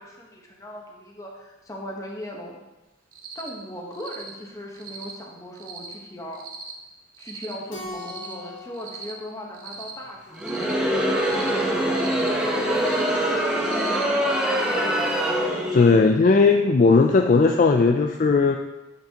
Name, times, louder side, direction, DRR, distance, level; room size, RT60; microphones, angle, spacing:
voice 1, 0.0-2.6 3.3-6.4 7.2-10.9 11.4-15.1 15.7-16.4, equal, 15° left, -1 dB, 1.1 m, -38 dB
Cricket, 3.1-3.5 3.9-4.3 4.7-5.1 5.6-5.9 6.3-6.7 7.1-7.5 7.9-8.3 8.7-9.1 9.5-9.9 10.3-10.7 11.1-11.5 11.9-12.3 12.7-13.1 13.6-14.0, right 5 dB, 45° right, 0.8 m, -39 dB
Keyboard (musical), 7.7-10.3, left 2 dB, 75° left, 1.8 m, -41 dB
Crowd, 10.3-16.0, right 1 dB, 5° right, 0.8 m, -24 dB
voice 2, 15.7-18.6, left 4 dB, 40° left, 4 dB, 0.3 m, -17 dB
10.0 x 5.8 x 2.9 m, 1.0 s
head